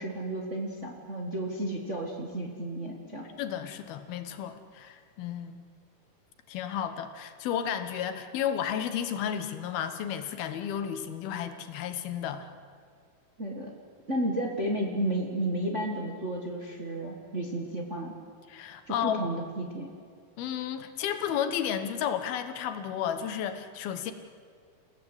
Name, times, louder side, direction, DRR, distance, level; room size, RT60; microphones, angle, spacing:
voice 1, 0.0-3.3 13.4-13.7 14.1-18.1 18.9-19.9, right 1 dB, 30° right, 1 dB, 1.4 m, -32 dB
voice 2, 3.4-5.6 6.5-12.5 18.5-19.2 20.4-24.1, left 9 dB, 90° left, 9 dB, 3.2 m, -32 dB
29.0 x 16.5 x 8.2 m, 2.1 s
omnidirectional pair, 4.2 m